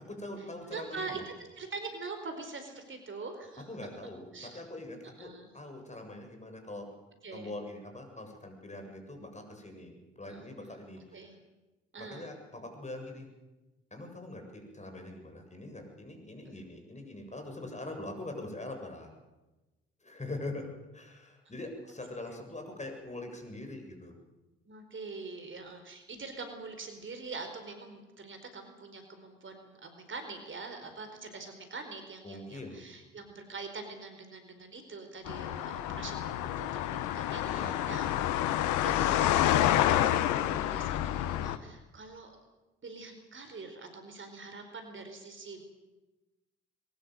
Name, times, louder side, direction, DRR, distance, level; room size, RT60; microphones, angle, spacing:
voice 1, 0.1-1.2 3.6-6.9 7.3-11.2 12.0-13.3 13.9-19.1 20.0-20.7 20.9-24.2 32.2-32.8 37.4-38.4, left 2 dB, 25° left, 4 dB, 7.6 m, -43 dB
voice 2, 0.7-3.7 4.3-4.6 5.2-5.5 7.2-7.5 10.3-10.4 11.1-11.3 11.9-12.3 16.4-16.6 24.7-42.3 42.8-45.6, right 3 dB, 40° right, 6 dB, 4.5 m, -44 dB
sound 1, 35.3-41.6, left 12 dB, 70° left, 1.2 m, -28 dB
22.5 x 20.0 x 8.0 m, 1.1 s
hypercardioid pair, 45°, 30 cm